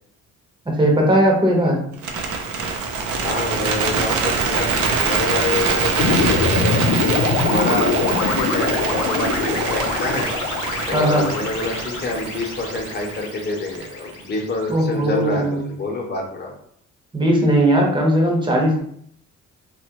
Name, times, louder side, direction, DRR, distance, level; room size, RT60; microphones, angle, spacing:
voice 1, 0.8-1.8 10.9-11.3 14.7-15.6 17.1-18.8, right 1 dB, 15° right, -1 dB, 0.9 m, -18 dB
Bird, 1.9-14.1, right 5 dB, 75° right, 0.6 m, -24 dB
voice 2, 3.2-6.8 7.4-10.3 10.9-16.5, left 3 dB, 35° left, 0 dB, 0.9 m, -27 dB
sound 1, 6.0-14.3, left 5 dB, 85° left, 0.5 m, -24 dB
2.9 x 2.4 x 2.9 m, 0.65 s
cardioid pair, 90°, 30 cm